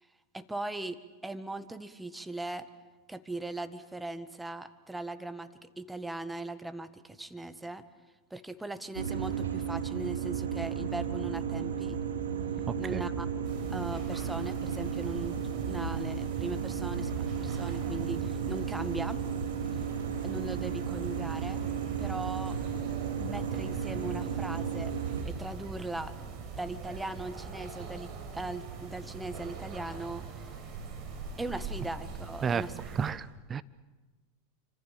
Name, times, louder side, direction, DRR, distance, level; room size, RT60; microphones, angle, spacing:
voice 1, 0.3-2.7 3.1-7.8 8.3-12.0 12.8-13.3 13.7-15.4 15.7-19.2 20.2-21.6 22.0-22.6 23.2-24.9 25.2-26.1 26.6-30.4 31.4-32.8, right 2 dB, 5° right, 11 dB, 1.7 m, -39 dB
sound 1, 9.0-25.2, right 7 dB, 85° right, 3.1 m, -34 dB
voice 2, 12.7-13.1 32.4-32.7 32.9-33.6, right 6 dB, 25° right, 17 dB, 1.0 m, -32 dB
sound 2, 13.4-33.1, right 5 dB, 50° right, 6.0 m, -42 dB
28.5 x 25.5 x 7.3 m, 1.2 s
hypercardioid pair, 100°, 0 cm